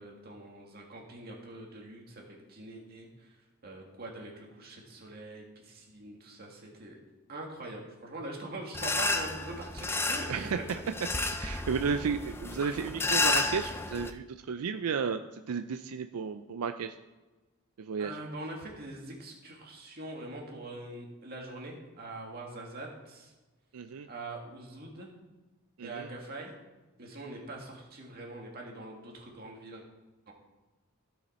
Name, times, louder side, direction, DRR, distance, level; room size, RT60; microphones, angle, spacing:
voice 1, 0.0-3.4 3.6-7.0 7.3-10.3 10.7-10.8 18.0-23.3 24.1-25.1 25.8-26.5 27.0-29.8 30.3-30.4, right 2 dB, 45° right, -1 dB, 2.1 m, -43 dB
sound 1, 8.7-14.1, left 3 dB, 10° left, 0.4 m, -31 dB
voice 2, 11.3-15.2 15.5-16.9 17.8-18.1 23.7-24.1 25.8-26.1, right 6 dB, 85° right, 8 dB, 0.4 m, -33 dB
16.0 x 5.7 x 4.3 m, 1.2 s
head